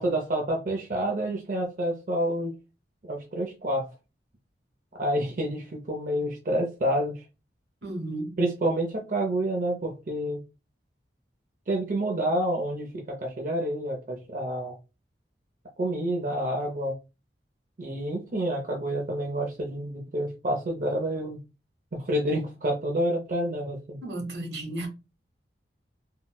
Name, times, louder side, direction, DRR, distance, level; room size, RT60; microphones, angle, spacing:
voice 1, 0.0-2.5 3.1-3.9 5.0-7.2 8.4-10.4 11.7-14.7 15.8-17.0 17.8-21.4 21.9-24.0, right 1 dB, 50° right, 0.5 m, -28 dB
voice 2, 7.8-8.4 24.0-24.9, right 1 dB, 70° right, 1.1 m, -33 dB
3.8 x 2.1 x 2.2 m
head